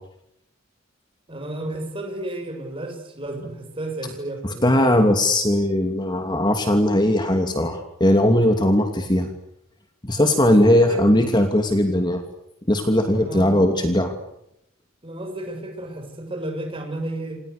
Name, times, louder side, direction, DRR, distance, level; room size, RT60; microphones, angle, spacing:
voice 1, 1.3-5.2 10.3-11.3 13.2-13.6 15.0-17.4, right 1 dB, 25° right, 5 dB, 7.2 m, -32 dB
voice 2, 4.6-9.3 10.0-12.2 12.7-14.1, left 1 dB, 20° left, 5 dB, 2.8 m, -19 dB
28.5 x 28.0 x 6.8 m, 0.78 s
head